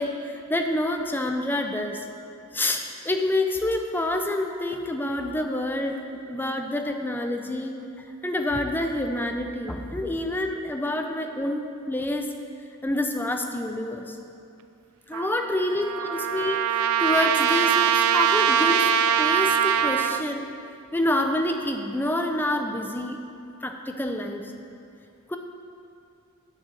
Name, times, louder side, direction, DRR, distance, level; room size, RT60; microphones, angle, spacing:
voice 1, 0.0-2.0 2.5-7.8 8.2-12.3 12.8-14.2 15.1-18.9 19.2-20.5 20.9-23.2 23.6-24.5 25.3-25.4, left 1 dB, 10° left, 4 dB, 0.5 m, -27 dB
Trumpet, 15.1-20.2, right 9 dB, 80° right, 0.3 m, -23 dB
9.0 x 8.5 x 3.9 m, 2.6 s
head